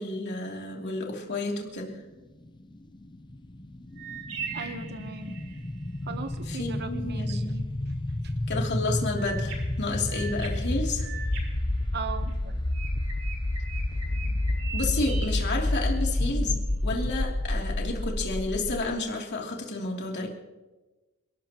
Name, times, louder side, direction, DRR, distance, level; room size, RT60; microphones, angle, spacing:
voice 1, 0.0-1.9 6.5-7.6 8.5-11.1 14.7-20.3, left 2 dB, 50° left, 0 dB, 2.9 m, -31 dB
sound 1, 2.9-18.8, left 1 dB, 20° left, 0.7 m, -30 dB
sound 2, 4.0-5.7 9.1-12.3 12.7-16.2, right 5 dB, 75° right, 5.7 m, -41 dB
voice 2, 4.5-5.4 6.1-7.6 8.2-8.3 11.9-12.6, right 4 dB, 50° right, 8 dB, 1.0 m, -38 dB
29.5 x 12.5 x 3.0 m, 1.1 s
head